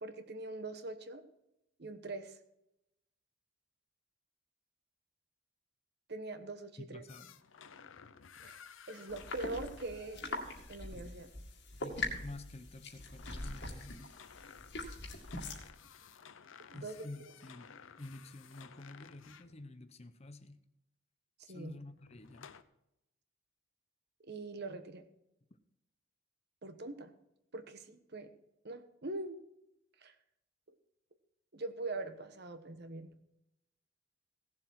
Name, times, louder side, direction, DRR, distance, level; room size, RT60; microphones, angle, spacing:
voice 1, 0.0-1.2 1.8-2.4 6.1-7.0 8.4-8.6 8.9-10.4 10.7-11.3 16.7-17.1 21.5-21.7 24.3-25.0 26.6-27.1 27.5-28.3 28.6-29.4 30.0-30.1 31.5-33.1, right 2 dB, 55° right, 9 dB, 1.2 m, -42 dB
voice 2, 6.8-7.4 11.8-14.1 16.7-20.6 21.5-22.6, left 2 dB, 30° left, 11 dB, 0.7 m, -50 dB
sound 1, 7.1-10.8 13.0-19.6 22.0-22.6, left 7 dB, 80° left, 0.7 m, -56 dB
sound 2, 9.1-15.7, left 2 dB, 60° left, 2.1 m, -43 dB
17.0 x 7.4 x 4.6 m, 0.86 s
head